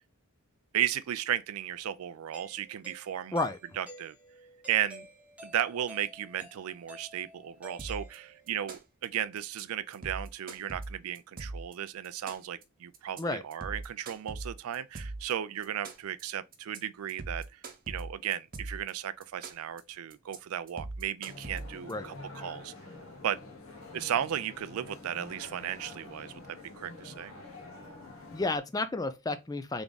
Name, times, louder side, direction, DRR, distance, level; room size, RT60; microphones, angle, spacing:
voice 1, 0.7-3.4 3.8-4.2 4.7-5.1 5.4-17.6 17.9-22.7 23.2-23.4 23.9-27.3, right 10 dB, 75° right, 0.4 m, -35 dB
Doorbell, 2.3-8.7, equal, 5° right, 1.0 m, -51 dB
sound 1, 7.8-8.2 8.5-9.0 9.4-9.6 9.9-11.7 12.0-12.6 12.9-13.2 13.5-15.3 15.6-16.2 16.5-16.8 17.1-18.9 19.2-19.8 20.1-20.4 20.7-21.9, right 2 dB, 40° right, 0.8 m, -40 dB
sound 2, 21.2-28.6, left 2 dB, 65° left, 1.3 m, -47 dB
voice 2, 28.3-29.8, left 2 dB, 15° left, 0.3 m, -31 dB
3.5 x 3.5 x 3.8 m
head